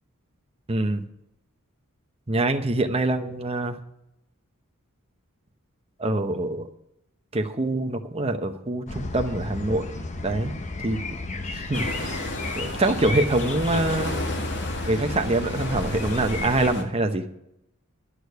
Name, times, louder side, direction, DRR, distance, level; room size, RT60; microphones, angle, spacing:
voice 1, 0.7-1.0 2.3-3.8 6.0-6.7 7.3-10.5 10.8-11.2 11.5-12.2 12.6-14.2 14.8-17.2, right 2 dB, 25° right, 6 dB, 0.8 m, -25 dB
sound 1, 8.9-16.7, left 2 dB, 35° left, 0.8 m, -33 dB
sound 2, 11.7-16.8, left 2 dB, 55° left, 1.7 m, -33 dB
11.5 x 6.6 x 8.0 m, 0.82 s
head